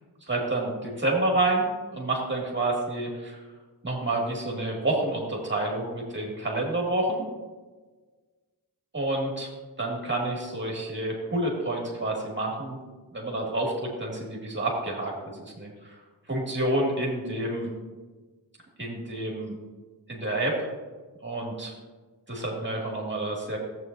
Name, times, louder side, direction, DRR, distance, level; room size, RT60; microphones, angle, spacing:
voice 1, 0.3-1.6 1.9-3.4 3.8-7.2 8.9-9.5 9.8-12.8 13.1-15.1 15.4-16.0 16.3-17.7 18.8-19.5 20.1-20.6 21.2-21.7 22.3-23.6, right 2 dB, 30° right, -2 dB, 2.2 m, -28 dB
12.5 x 8.0 x 2.7 m, 1.3 s
cardioid pair, 70°, 40 cm